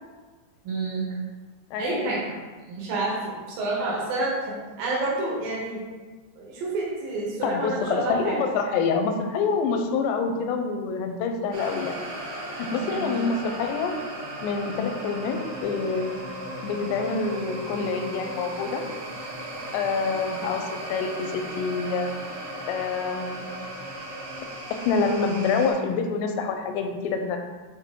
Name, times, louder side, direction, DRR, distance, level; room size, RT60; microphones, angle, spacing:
voice 1, 0.6-1.1 1.8-2.2 2.7-5.8 6.4-8.4 12.8-13.0, right 2 dB, 65° right, -4 dB, 2.8 m, -29 dB
voice 2, 1.7-2.1 7.4-12.0 12.6-13.9 14.4-16.1 16.6-18.8 19.7-22.1 22.7-23.5 24.7-27.4, left 4 dB, 90° left, 5 dB, 2.9 m, -27 dB
sound 1, 11.5-25.7, right 1 dB, 50° right, 2.7 m, -36 dB
7.4 x 3.9 x 3.7 m, 1.3 s
omnidirectional pair, 4.8 m